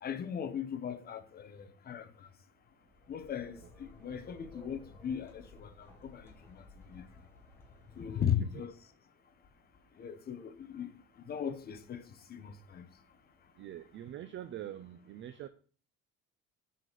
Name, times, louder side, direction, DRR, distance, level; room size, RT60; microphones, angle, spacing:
voice 1, 0.0-2.1 3.1-6.6 6.9-7.1 8.0-8.7 10.0-10.9 11.2-12.0 12.3-12.9, left 8 dB, 30° left, 0.7 m, -38 dB
sound 1, 2.7-8.7, left 2 dB, 10° left, 1.9 m, -57 dB
voice 2, 8.1-8.5 13.6-15.5, right 11 dB, 40° right, 0.4 m, -44 dB
7.5 x 4.1 x 6.5 m
cardioid pair, 170°, 31 cm